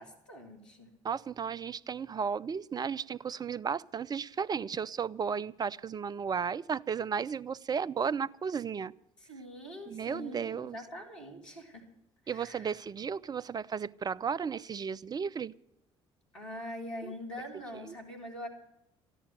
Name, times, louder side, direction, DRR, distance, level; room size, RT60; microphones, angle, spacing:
voice 1, 0.0-0.9 9.2-11.8 12.3-12.7 16.3-18.5, equal, 80° left, 2.8 m, -44 dB
voice 2, 1.0-8.9 9.9-10.8 12.3-15.5 17.0-17.1 17.9-18.0, right 6 dB, 25° right, 0.5 m, -34 dB
14.0 x 11.5 x 7.8 m
figure-of-eight pair, 50°, 15 cm